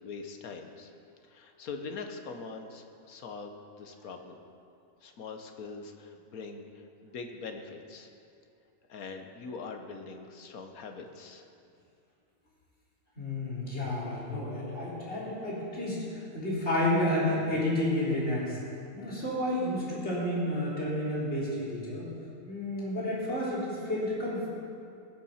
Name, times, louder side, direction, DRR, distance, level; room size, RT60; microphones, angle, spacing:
voice 1, 0.0-0.9 1.3-4.4 5.0-8.1 8.9-11.5, left 4 dB, 75° left, 5 dB, 1.5 m, -43 dB
voice 2, 13.2-18.6 18.9-22.1 22.5-24.5, left 1 dB, 45° left, -7 dB, 3.9 m, -31 dB
20.0 x 7.0 x 5.7 m, 2.6 s
omnidirectional pair, 1.5 m